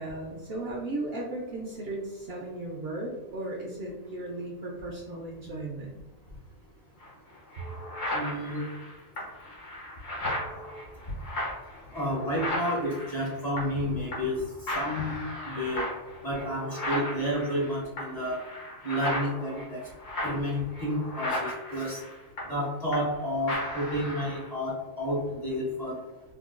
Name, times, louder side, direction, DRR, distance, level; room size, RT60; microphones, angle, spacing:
voice 1, 0.0-5.9, right 2 dB, 60° right, -2 dB, 0.7 m, -36 dB
sound 1, 7.0-7.1 7.5-13.9 14.1-14.4 14.7-23.2 23.5-24.5, left 1 dB, 70° left, 1.4 m, -36 dB
voice 2, 8.1-8.6 10.2-10.3 11.1-11.2 11.9-15.2 15.4-15.9 16.2-18.4 18.8-19.8 20.2-22.0 22.4-26.0, equal, 40° left, -5 dB, 0.7 m, -30 dB
3.6 x 2.2 x 2.4 m, 1.1 s
omnidirectional pair, 1.4 m